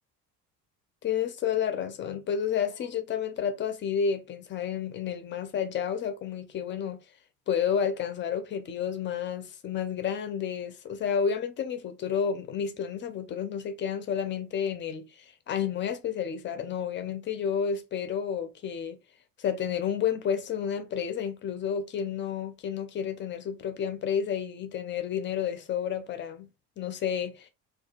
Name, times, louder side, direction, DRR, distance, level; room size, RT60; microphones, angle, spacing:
voice 1, 1.0-7.0 7.5-19.0 19.4-26.5 26.8-27.5, left 7 dB, 25° left, 0.4 m, -31 dB
2.7 x 2.2 x 2.3 m
figure-of-eight pair, 55°, 46 cm